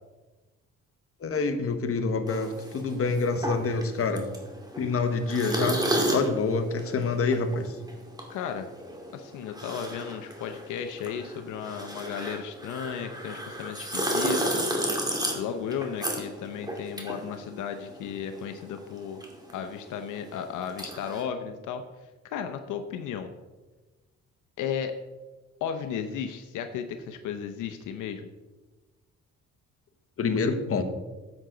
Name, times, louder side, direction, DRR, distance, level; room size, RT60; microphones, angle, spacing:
voice 1, 1.2-4.3 4.8-5.8 6.1-7.7 30.2-30.8, left 4 dB, 50° left, 7 dB, 1.2 m, -27 dB
sound 1, 2.3-18.1 18.3-21.2, right 1 dB, 15° right, 2.3 m, -32 dB
voice 2, 8.3-8.7 9.1-14.6 15.3-19.2 19.5-21.8 22.3-23.3 24.6-24.9 25.6-28.3, left 7 dB, 80° left, 7 dB, 0.7 m, -34 dB
10.5 x 7.9 x 3.9 m, 1.2 s
cardioid pair, 90°, 30 cm